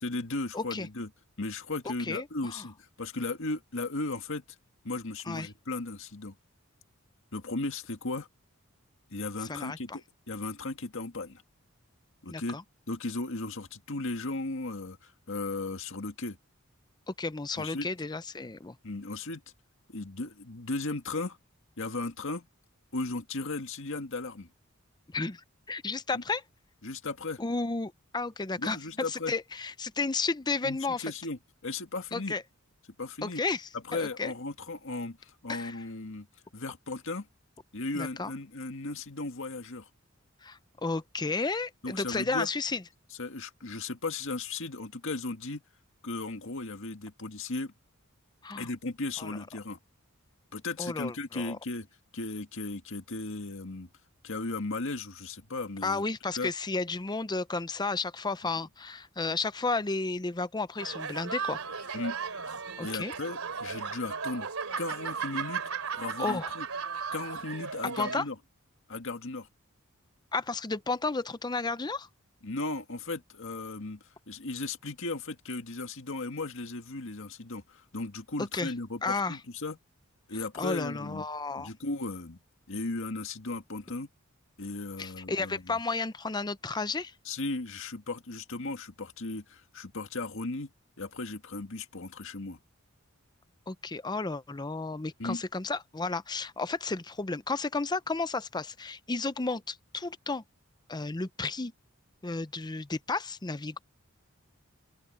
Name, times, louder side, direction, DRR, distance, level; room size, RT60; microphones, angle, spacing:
voice 1, 0.0-1.1 1.4-4.4 4.8-6.3 7.3-8.3 9.1-11.4 12.2-12.6 12.9-16.4 17.6-17.9 18.8-19.4 19.9-21.4 21.8-22.5 22.9-24.5 26.1-26.2 26.8-27.4 28.6-29.3 30.6-32.3 33.0-33.4 33.9-36.3 36.5-37.3 37.7-39.9 41.8-42.5 43.2-45.6 46.0-47.7 48.6-49.8 50.5-51.9 52.1-53.9 54.2-56.0 56.4-56.5 61.9-62.2 62.5-64.5 64.8-66.7 67.1-68.4 68.9-69.5 72.4-74.0 74.3-79.8 80.3-81.3 81.6-82.4 82.7-84.1 84.6-85.8 87.3-90.7 91.0-92.6 95.2-95.4, left 3 dB, 65° left, 1.9 m, -36 dB
voice 2, 0.5-0.9 2.0-2.6 5.3-5.5 9.5-10.0 12.3-12.6 17.1-18.8 25.1-26.4 27.4-28.8 29.1-31.0 32.1-32.4 33.2-34.3 35.5-35.8 37.9-38.3 40.4-42.8 48.4-48.7 49.2-49.4 50.8-51.6 55.8-61.6 62.8-63.1 66.2-66.5 68.0-68.2 70.3-72.1 78.5-78.7 79.0-79.4 80.3-81.7 85.0-87.1 93.7-100.4 100.9-101.7 102.2-103.8, left 3 dB, 20° left, 0.6 m, -33 dB
sound 1, 60.8-68.2, right 6 dB, 85° right, 3.0 m, -36 dB
open air
head